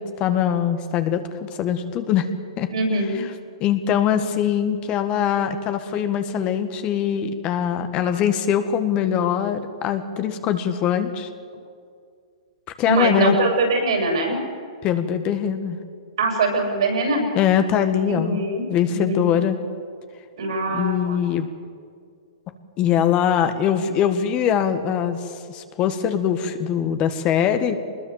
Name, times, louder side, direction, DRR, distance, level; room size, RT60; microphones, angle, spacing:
voice 1, 0.0-2.3 2.6-2.7 3.6-11.3 12.8-13.3 14.8-15.8 17.3-19.6 20.7-21.5 22.8-27.8, left 9 dB, 35° left, 8 dB, 1.7 m, -22 dB
voice 2, 2.7-3.2 12.9-14.4 16.2-17.3 18.1-19.4 20.4-21.2, right 2 dB, 75° right, 2 dB, 7.5 m, -23 dB
23.0 x 20.5 x 7.5 m, 2.2 s
hypercardioid pair, 120°, 3 cm